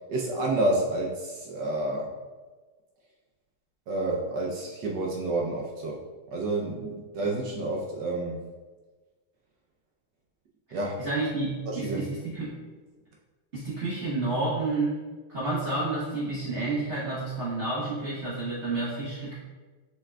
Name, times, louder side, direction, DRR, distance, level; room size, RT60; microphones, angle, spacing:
voice 1, 0.1-2.1 3.9-6.0 6.3-8.4 10.7-11.1 11.7-12.0, right 2 dB, 70° right, -2 dB, 1.1 m, -29 dB
voice 2, 10.7-12.6 13.5-15.0 15.3-19.3, right 2 dB, 45° right, -9 dB, 1.0 m, -30 dB
5.6 x 3.6 x 2.2 m, 1.3 s
omnidirectional pair, 2.3 m